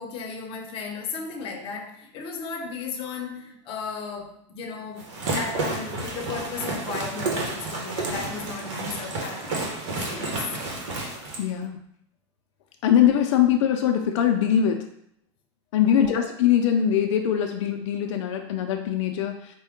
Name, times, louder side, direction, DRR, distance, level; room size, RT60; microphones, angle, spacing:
voice 1, 0.0-9.7 10.0-10.4 13.1-13.2 15.9-16.2, left 4 dB, 35° left, 2 dB, 0.7 m, -35 dB
sound 1, 5.0-11.4, right 2 dB, 75° right, 1.1 m, -31 dB
voice 2, 11.4-11.8 12.8-14.8 15.7-19.4, left 9 dB, 80° left, 4 dB, 0.4 m, -22 dB
4.4 x 2.2 x 3.6 m, 0.72 s
supercardioid pair, 140°, 15 cm